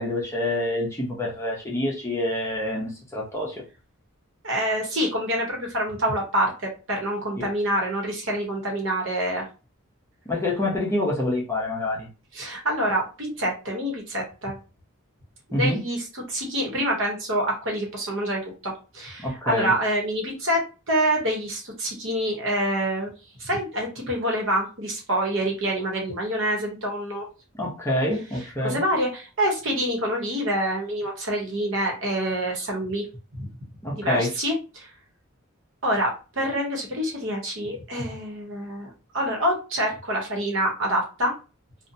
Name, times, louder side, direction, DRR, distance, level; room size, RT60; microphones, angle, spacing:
voice 1, 0.0-3.6 7.4-7.5 10.3-12.1 15.5-15.8 19.2-19.7 27.6-28.8 33.8-34.3, left 1 dB, 15° left, -4 dB, 0.7 m, -26 dB
voice 2, 4.4-9.5 12.3-14.6 15.5-20.6 20.9-23.1 23.4-27.3 28.6-33.1 33.4-33.5 33.9-34.9 35.8-41.3, right 1 dB, 60° right, 0 dB, 0.9 m, -26 dB
2.7 x 2.1 x 2.6 m, 0.32 s
head